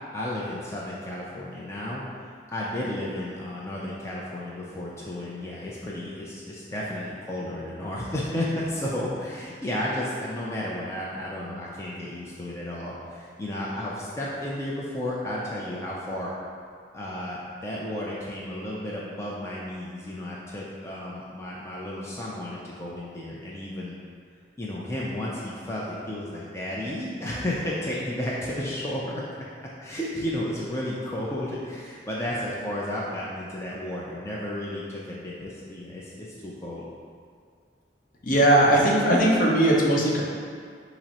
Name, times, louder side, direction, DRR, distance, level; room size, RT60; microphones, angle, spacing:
voice 1, 0.1-2.0 2.5-16.4 16.9-24.0 24.6-29.2 29.8-36.8, left 1 dB, 15° left, -6 dB, 0.4 m, -33 dB
voice 2, 38.2-40.2, right 1 dB, 50° left, -3 dB, 0.7 m, -19 dB
6.0 x 2.0 x 4.2 m, 2.1 s
head